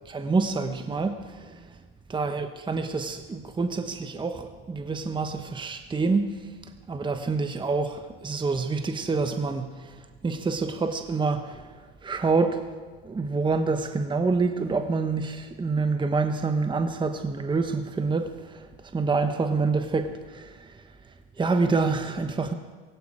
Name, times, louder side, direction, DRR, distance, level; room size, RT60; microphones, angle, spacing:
voice 1, 0.1-1.6 2.1-6.4 6.9-9.9 10.2-11.6 12.0-12.6 13.0-18.7 18.9-20.7 21.4-22.5, right 4 dB, 15° right, 7 dB, 1.1 m, -27 dB
17.0 x 16.5 x 5.0 m, 1.4 s
supercardioid pair, 100°, 31 cm